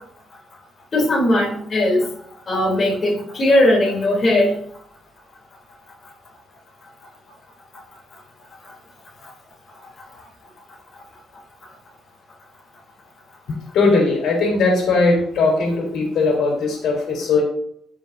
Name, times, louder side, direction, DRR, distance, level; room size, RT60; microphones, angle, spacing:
voice 1, 0.9-2.1 2.5-4.5, left 1 dB, 30° left, -4 dB, 3.5 m, -18 dB
voice 2, 13.7-17.4, left 3 dB, 75° left, 0 dB, 3.7 m, -19 dB
14.5 x 7.3 x 2.8 m, 0.67 s
cardioid pair, 175°, 0 cm